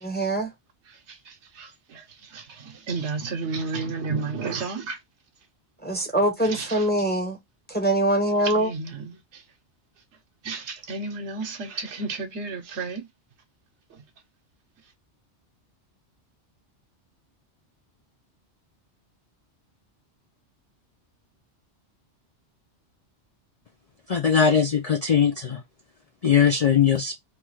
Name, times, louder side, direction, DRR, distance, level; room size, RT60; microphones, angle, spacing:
voice 1, 0.0-0.5 5.8-7.4 7.7-8.7, right 1 dB, 10° left, 0.5 m, -23 dB
voice 2, 1.1-5.0 6.4-6.8 8.4-9.4 10.4-13.1, right 4 dB, 80° right, 1.1 m, -32 dB
voice 3, 24.1-25.6 26.2-27.1, left 7 dB, 80° left, 0.3 m, -20 dB
3.0 x 2.3 x 3.1 m
omnidirectional pair, 1.2 m